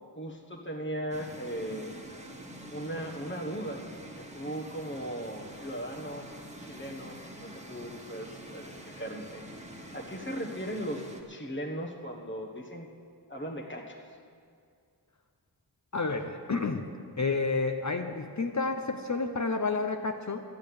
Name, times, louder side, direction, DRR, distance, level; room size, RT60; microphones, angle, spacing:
voice 1, 0.1-1.9 2.7-3.8 4.2-6.3 6.6-9.5 9.9-12.9 13.3-14.0, equal, 30° left, -2 dB, 1.3 m, -38 dB
sound 1, 1.1-11.2, right 1 dB, 15° right, 1.4 m, -46 dB
voice 2, 15.9-16.9 17.2-20.4, left 3 dB, 45° left, 5 dB, 0.9 m, -30 dB
11.5 x 8.8 x 8.7 m, 2.3 s
wide cardioid pair, 80°, 41 cm